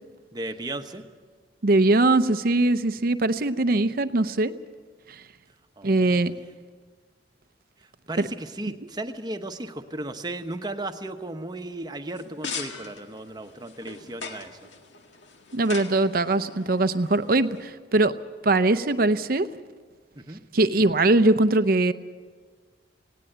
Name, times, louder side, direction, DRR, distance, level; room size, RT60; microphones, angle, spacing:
voice 1, 0.3-1.0 5.8-6.2 8.1-14.6 20.2-20.4, right 2 dB, 25° right, 7 dB, 1.0 m, -35 dB
voice 2, 1.6-4.5 5.8-6.3 8.2-8.3 15.5-18.2 18.4-19.5 20.5-21.9, right 2 dB, 55° right, 11 dB, 0.7 m, -21 dB
sound 1, 12.1-17.6, left 4 dB, 85° left, 1.8 m, -40 dB
19.0 x 17.5 x 8.0 m, 1.5 s
head